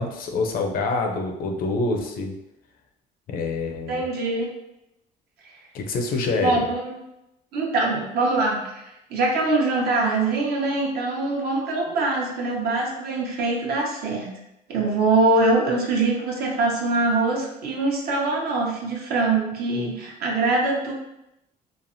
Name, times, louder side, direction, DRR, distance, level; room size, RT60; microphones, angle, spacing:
voice 1, 0.0-2.3 3.3-4.0 5.7-6.7, left 3 dB, 60° left, 3 dB, 0.5 m, -26 dB
voice 2, 3.9-4.5 6.4-7.0 7.5-8.8 9.1-14.3 14.7-20.9, right 2 dB, 65° right, -2 dB, 0.8 m, -23 dB
3.2 x 2.1 x 2.6 m, 0.86 s
cardioid pair, 110°, 17 cm